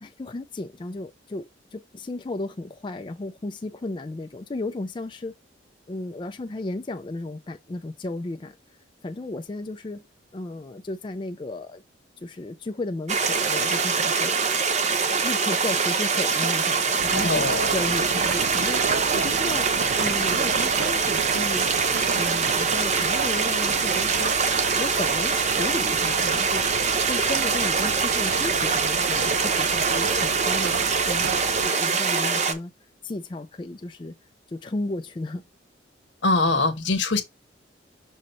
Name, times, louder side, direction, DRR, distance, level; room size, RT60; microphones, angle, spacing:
voice 1, 0.0-5.3 5.9-8.6 9.0-10.0 10.3-11.8 12.2-14.3 15.2-18.8 19.1-19.7 20.0-21.7 22.1-24.4 24.7-26.6 27.0-32.7 33.0-34.1 34.5-35.4, left 2 dB, 25° left, 0.4 m, -34 dB
sound 1, 13.1-32.5, right 5 dB, 35° right, 0.7 m, -24 dB
sound 2, 17.0-31.7, right 6 dB, 55° right, 0.3 m, -33 dB
voice 2, 17.1-17.7 36.2-37.2, left 3 dB, 75° left, 1.0 m, -23 dB
6.3 x 2.8 x 5.4 m
head